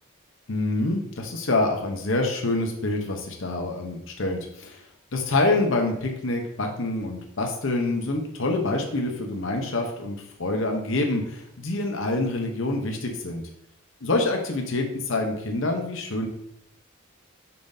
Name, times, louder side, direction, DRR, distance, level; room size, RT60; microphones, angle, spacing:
voice 1, 0.5-4.8 5.1-13.4 14.0-16.3, left 2 dB, 65° left, 2 dB, 0.8 m, -26 dB
7.1 x 5.9 x 2.7 m, 0.75 s
head